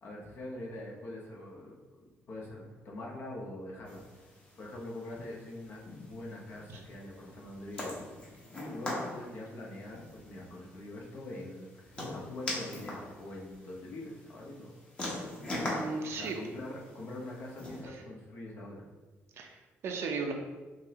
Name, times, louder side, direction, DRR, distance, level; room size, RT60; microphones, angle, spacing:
voice 1, 0.0-4.0 4.6-7.9 8.5-14.7 16.1-18.8, left 1 dB, 50° left, -2 dB, 0.9 m, -44 dB
sound 1, 3.9-17.8, left 1 dB, 25° left, 0.9 m, -42 dB
voice 2, 15.6-16.4 17.8-18.0 19.4-20.3, right 4 dB, 65° right, 3 dB, 0.5 m, -36 dB
5.4 x 2.1 x 2.8 m, 1.2 s
cardioid pair, 125°, 5 cm